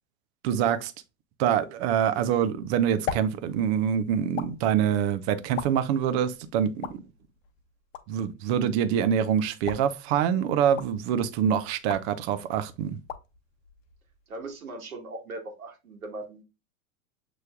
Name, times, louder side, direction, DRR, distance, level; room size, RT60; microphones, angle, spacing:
voice 1, 0.4-0.9 1.4-7.0 8.1-13.0, right 9 dB, 50° right, 0.7 m, -25 dB
sound 1, 2.4-14.6, left 8 dB, 65° left, 0.8 m, -42 dB
voice 2, 14.3-16.4, right 2 dB, 90° right, 1.6 m, -39 dB
6.8 x 3.2 x 2.3 m
hypercardioid pair, 105°, 41 cm